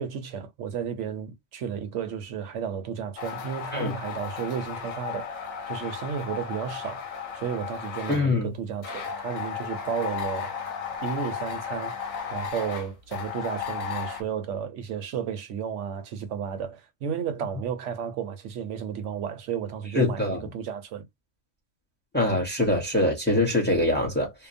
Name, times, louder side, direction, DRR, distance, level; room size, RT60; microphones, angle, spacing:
voice 1, 0.0-10.5 11.0-12.0 12.3-21.1, right 7 dB, 70° right, 0.9 m, -33 dB
sound 1, 3.2-8.2 8.8-14.2, left 7 dB, 90° left, 1.2 m, -34 dB
voice 2, 8.1-8.5 20.0-20.4 22.1-24.3, left 1 dB, 10° left, 0.7 m, -23 dB
2.8 x 2.1 x 2.5 m
omnidirectional pair, 1.4 m